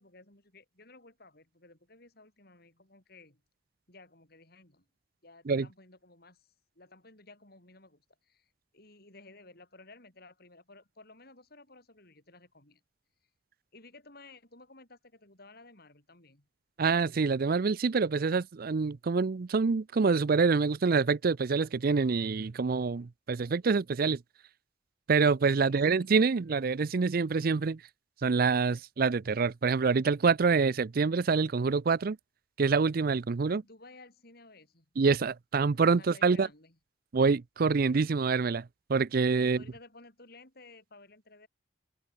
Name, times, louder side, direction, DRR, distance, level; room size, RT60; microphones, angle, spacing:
voice 1, 0.0-3.4 3.9-4.9 5.2-6.5 6.8-12.8 13.7-16.5 25.6-26.1 33.5-34.9 35.9-36.8 39.4-41.5, left 3 dB, 55° left, 7.0 m, -55 dB
voice 2, 16.8-24.2 25.1-27.8 28.2-32.2 32.6-33.6 35.0-36.5 37.1-39.6, right 4 dB, 50° right, 0.5 m, -26 dB
head